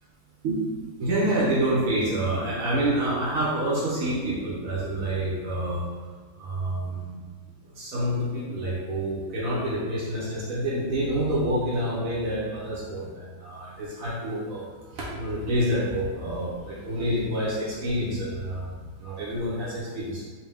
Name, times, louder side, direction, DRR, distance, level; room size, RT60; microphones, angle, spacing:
voice 1, 0.4-5.8 6.4-7.2 7.7-14.6 14.9-20.2, right 1 dB, 65° right, -7 dB, 1.2 m, -28 dB
4.3 x 2.1 x 3.4 m, 1.5 s
omnidirectional pair, 1.6 m